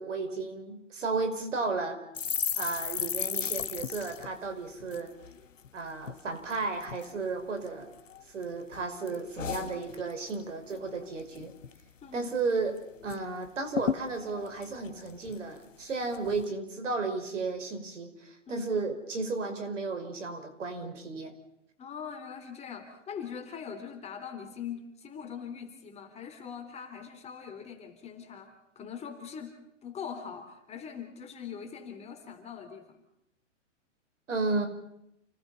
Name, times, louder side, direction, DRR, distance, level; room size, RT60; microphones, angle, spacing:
voice 1, 0.0-2.0 2.6-5.1 5.7-7.9 8.3-11.5 12.1-21.3 34.3-34.7, right 3 dB, 75° right, 7 dB, 5.4 m, -33 dB
sound 1, 2.1-5.7 6.0-6.2 6.5-7.1 7.6-8.4 8.7-10.4 10.7-10.9 11.2-11.8 12.1-12.2 12.5-13.2 13.4-13.5 13.7-15.6 16.1-16.4, left 7 dB, 85° left, 1.3 m, -35 dB
voice 2, 21.8-33.0, left 7 dB, 15° left, 5 dB, 3.9 m, -42 dB
29.5 x 19.5 x 5.6 m, 0.76 s
hypercardioid pair, 130°, 37 cm